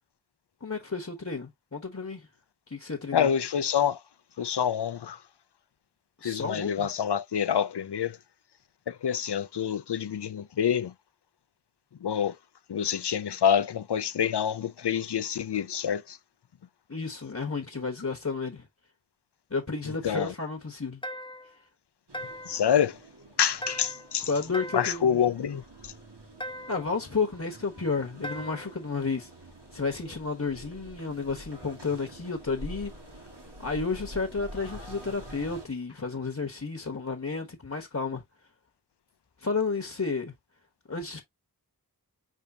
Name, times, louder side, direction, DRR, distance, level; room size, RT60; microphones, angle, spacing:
voice 1, 0.6-2.3 2.7-3.3 6.2-6.8 16.9-18.7 19.5-21.0 21.4-21.5 24.3-25.2 26.7-29.3 29.7-32.9 33.6-38.2 39.4-40.3 40.9-41.2, left 4 dB, 40° left, 1.1 m, -32 dB
voice 2, 3.1-4.0 4.4-5.2 6.2-8.2 8.9-10.9 12.0-12.3 12.7-16.2 20.0-20.3 22.5-23.0 23.4-24.3 24.7-25.9, left 8 dB, 80° left, 0.5 m, -27 dB
sound 1, 21.0-21.6 22.1-22.7 23.6-24.2 24.5-25.1 26.4-26.9 28.2-28.8, equal, 10° left, 0.7 m, -39 dB
sound 2, 22.1-35.7, right 1 dB, 85° right, 1.7 m, -47 dB
5.0 x 3.6 x 2.7 m
wide cardioid pair, 40°, 40 cm